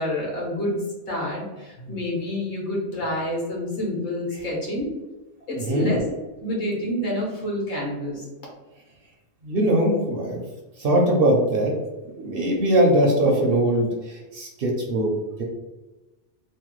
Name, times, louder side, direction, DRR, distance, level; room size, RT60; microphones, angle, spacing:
voice 1, 0.0-4.9 5.5-6.0 6.4-8.2, left 1 dB, 70° left, -4 dB, 1.4 m, -28 dB
voice 2, 5.5-5.9 9.4-10.5 10.8-11.7 12.2-15.1 15.4-15.5, right 1 dB, 60° right, 0 dB, 0.7 m, -21 dB
3.1 x 2.1 x 3.0 m, 1.1 s
omnidirectional pair, 1.2 m